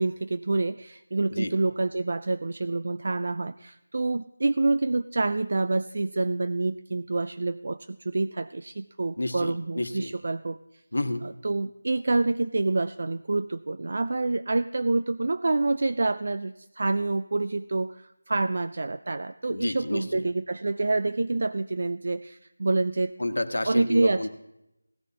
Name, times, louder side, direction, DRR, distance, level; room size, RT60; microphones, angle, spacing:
voice 1, 0.0-10.6 11.4-23.1 23.7-24.3, right 2 dB, 45° right, 12 dB, 0.3 m, -27 dB
voice 2, 9.2-10.1 10.9-11.3 19.5-20.2 23.2-24.3, left 1 dB, 85° left, 8 dB, 1.2 m, -30 dB
17.0 x 13.5 x 2.8 m, 0.91 s
figure-of-eight pair, 175°, 0 cm